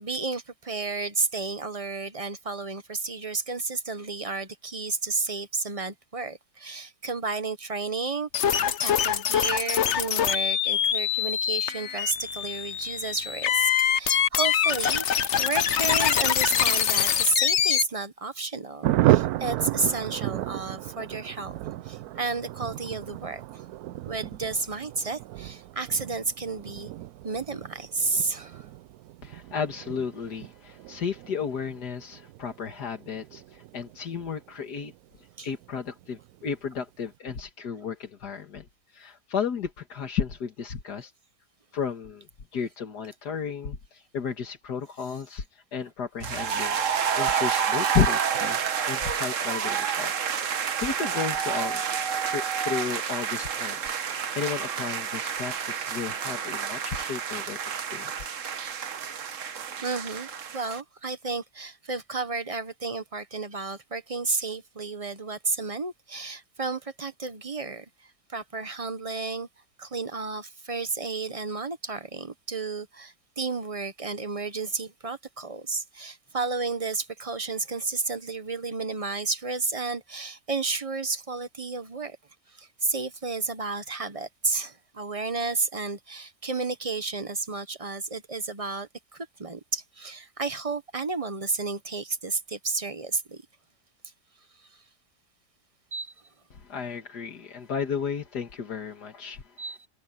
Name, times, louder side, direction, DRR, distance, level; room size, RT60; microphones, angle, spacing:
voice 1, 0.0-8.5 8.8-21.6 21.8-23.7 24.0-26.9 27.2-28.7 35.4-35.5 59.8-67.9 68.3-69.5 69.8-82.2 82.5-93.4 95.9-96.1 99.6-99.9, right 3 dB, 25° right, 1.0 m, -32 dB
sound 1, 8.3-17.8, left 9 dB, 55° left, 1.0 m, -24 dB
Thunder, 18.8-34.9 35.2-35.3 35.6-35.7 36.0-36.4, right 15 dB, 75° right, 1.0 m, -32 dB
voice 2, 29.2-34.9 35.4-38.7 38.9-41.1 41.7-42.3 42.5-48.6 48.9-54.0 54.4-58.3 96.5-99.6, left 6 dB, 80° left, 2.3 m, -33 dB
sound 2, 46.2-60.8, right 7 dB, 55° right, 1.4 m, -29 dB
open air
omnidirectional pair, 1.7 m